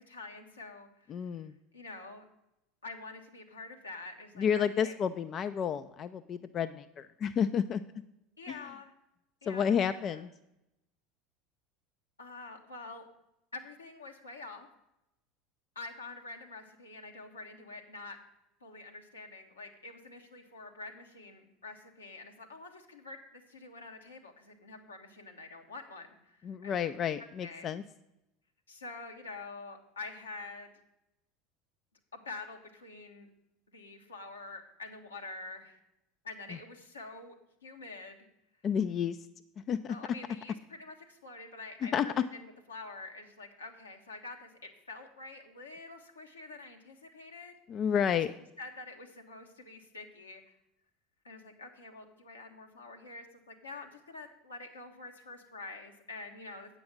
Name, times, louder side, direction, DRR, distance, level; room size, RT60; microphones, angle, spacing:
voice 1, 0.0-1.4 1.7-2.2 2.8-5.0 8.4-8.9 9.4-10.2 12.2-13.1 13.5-14.7 15.7-18.2 18.6-26.7 27.4-27.7 28.7-30.7 32.1-33.3 33.7-35.8 36.2-37.3 37.6-38.2 39.9-44.5 44.9-47.5 48.1-48.2 48.6-50.4 51.2-56.8, left 3 dB, 80° left, 2 dB, 1.1 m, -47 dB
voice 2, 1.1-1.5 4.4-7.8 8.5-8.6 9.5-10.3 26.4-27.8 38.6-39.2 39.7-40.0 41.9-42.1 47.7-48.3, left 8 dB, 40° left, 11 dB, 0.4 m, -30 dB
8.6 x 5.2 x 7.2 m, 0.87 s
figure-of-eight pair, 75°, 0 cm